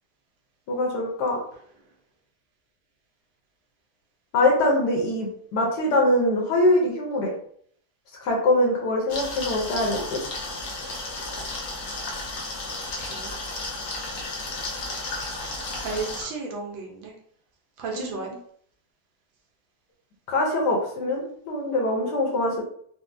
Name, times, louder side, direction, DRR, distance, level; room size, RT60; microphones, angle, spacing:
voice 1, 0.7-1.4 4.3-7.3 8.2-10.2 20.3-22.6, left 1 dB, 65° left, -1 dB, 1.2 m, -23 dB
sound 1, 9.1-16.2, left 2 dB, 90° left, 0.6 m, -33 dB
voice 2, 12.7-13.4 15.7-17.1 17.8-18.3, right 4 dB, 75° right, 1 dB, 1.4 m, -34 dB
4.0 x 2.1 x 2.5 m, 0.64 s
omnidirectional pair, 2.2 m